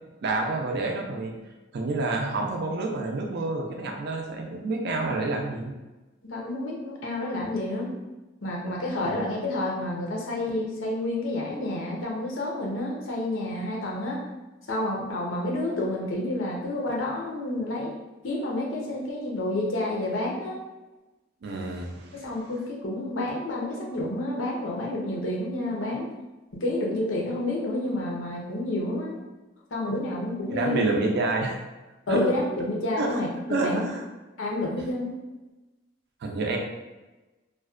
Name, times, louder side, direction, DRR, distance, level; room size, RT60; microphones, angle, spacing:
voice 1, 0.2-1.3 1.7-5.8 9.0-9.2 21.4-22.3 30.5-31.6 32.1-32.3 33.0-33.2 33.5-34.0 36.2-36.6, right 2 dB, 60° right, 2 dB, 0.4 m, -28 dB
voice 2, 6.2-7.9 8.4-14.2 14.7-17.9 18.2-20.6 22.2-26.1 26.5-29.2 29.7-30.8 32.1-33.8 34.4-35.1, left 1 dB, 90° left, -2 dB, 0.6 m, -29 dB
2.5 x 2.1 x 2.4 m, 1.1 s
head